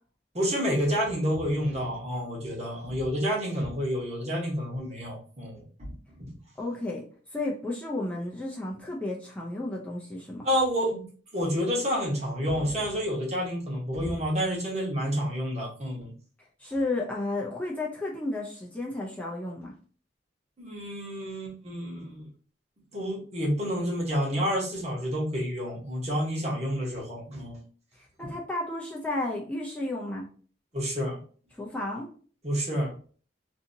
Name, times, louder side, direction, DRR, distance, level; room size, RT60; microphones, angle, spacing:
voice 1, 0.3-6.3 10.4-11.0 11.3-16.1 20.6-22.3 22.9-27.6 28.2-28.3 30.7-31.2 32.4-32.9, equal, 40° right, -3 dB, 1.0 m, -29 dB
voice 2, 6.6-7.0 7.3-10.5 16.6-19.7 28.0-30.3 31.5-32.1, left 2 dB, 10° left, -3 dB, 0.4 m, -32 dB
2.7 x 2.6 x 2.6 m, 0.42 s
head